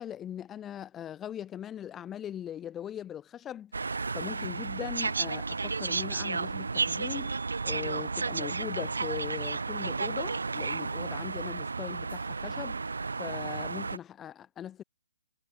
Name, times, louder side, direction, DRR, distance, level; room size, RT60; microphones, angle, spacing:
voice 1, 0.0-3.7 4.1-7.4 7.6-12.8 13.2-14.8, left 10 dB, 15° left, 2.7 m, -40 dB
sound 1, 3.7-14.0, right 4 dB, 85° right, 1.7 m, -32 dB
hypercardioid pair, 145°, 0 cm